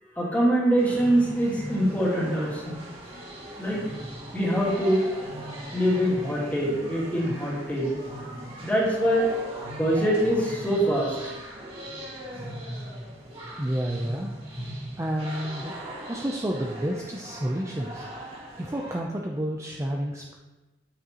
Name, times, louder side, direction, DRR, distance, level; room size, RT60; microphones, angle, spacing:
voice 1, 0.1-2.8 3.6-3.8 4.3-5.1 5.7-8.0 8.6-9.3 9.7-11.2, right 1 dB, 10° left, -6 dB, 2.5 m, -24 dB
sound 1, 0.8-19.0, right 1 dB, 30° right, 2.0 m, -39 dB
voice 2, 13.6-14.4 15.0-15.8 16.1-18.0 18.6-20.3, right 1 dB, 15° right, -1 dB, 0.6 m, -30 dB
12.5 x 6.4 x 3.0 m, 1.1 s
head